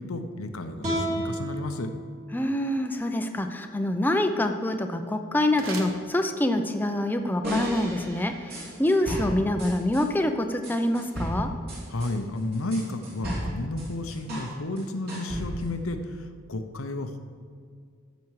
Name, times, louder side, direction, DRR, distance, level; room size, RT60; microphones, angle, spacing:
voice 1, 0.0-1.9 11.9-17.2, left 2 dB, 80° left, 7 dB, 0.8 m, -32 dB
sound 1, 0.8-4.0, right 1 dB, 30° right, 2.5 m, -34 dB
voice 2, 2.3-11.5, left 1 dB, 10° left, 6 dB, 0.5 m, -26 dB
sound 2, 5.4-6.8, right 3 dB, 70° right, 1.4 m, -41 dB
sound 3, 7.4-10.1 10.6-14.5 14.8-15.8, equal, 50° right, 3.2 m, -34 dB
14.5 x 6.2 x 4.8 m, 2.1 s
head